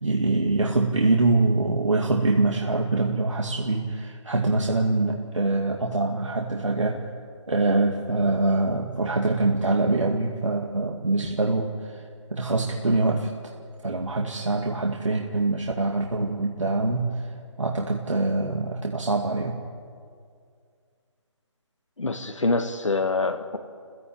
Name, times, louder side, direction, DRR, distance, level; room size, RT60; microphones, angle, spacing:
voice 1, 0.0-7.1 7.5-13.3 13.8-19.6, right 2 dB, 80° right, 1 dB, 2.2 m, -24 dB
voice 2, 22.0-23.6, left 3 dB, 80° left, 6 dB, 1.7 m, -25 dB
28.0 x 16.0 x 8.7 m, 2.2 s
figure-of-eight pair, 150°, 16 cm